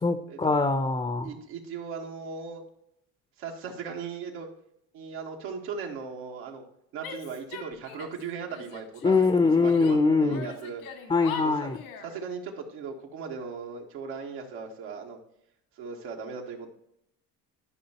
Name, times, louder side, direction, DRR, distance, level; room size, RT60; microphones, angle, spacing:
voice 1, 0.0-1.3 9.0-10.4 11.1-11.8, left 4 dB, 15° left, 0.7 m, -23 dB
voice 2, 1.2-2.6 3.4-4.5 4.9-6.6 6.9-9.1 9.6-10.8 11.4-11.7 12.0-15.2 15.8-16.7, right 5 dB, 80° right, 1.7 m, -38 dB
Female speech woman speaking / Yell, 7.0-8.2 8.5-10.0 10.3-12.1, left 6 dB, 75° left, 2.0 m, -41 dB
12.0 x 5.5 x 3.0 m
supercardioid pair, 85°, 38 cm